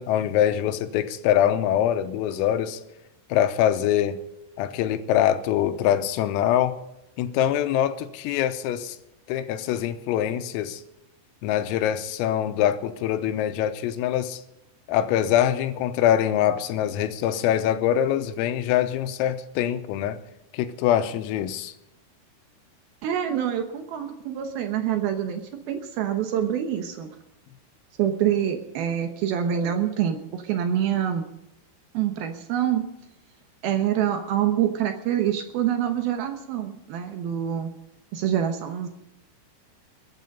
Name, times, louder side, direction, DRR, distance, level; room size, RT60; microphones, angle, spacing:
voice 1, 0.0-2.8 3.3-4.2 4.6-6.8 7.2-9.0 9.3-10.8 11.4-14.4 14.9-20.2 20.5-21.7, left 11 dB, 90° left, 10 dB, 3.6 m, -24 dB
voice 2, 23.0-25.4 25.7-27.1 28.0-31.3 31.9-32.8 33.6-37.7 38.1-38.9, right 10 dB, 80° right, 6 dB, 2.1 m, -26 dB
22.0 x 9.1 x 5.4 m, 0.88 s
omnidirectional pair, 5.9 m